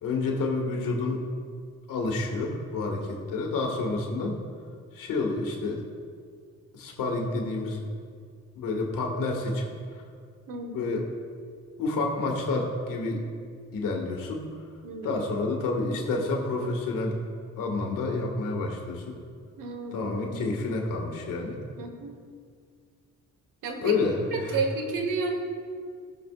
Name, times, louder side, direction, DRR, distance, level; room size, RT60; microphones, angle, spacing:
voice 1, 0.0-1.2 1.9-4.3 4.9-5.8 6.7-7.8 8.6-9.7 10.7-11.0 11.8-13.2 13.7-14.4 15.0-17.2 17.6-19.2 19.9-21.6 23.8-24.6, left 3 dB, 85° left, 0 dB, 1.9 m, -29 dB
voice 2, 10.5-10.8 14.8-15.4 19.6-20.6 21.8-22.2 23.6-25.4, right 3 dB, 80° right, 4 dB, 1.4 m, -32 dB
18.0 x 6.9 x 2.5 m, 2.1 s
cardioid pair, 80°, 32 cm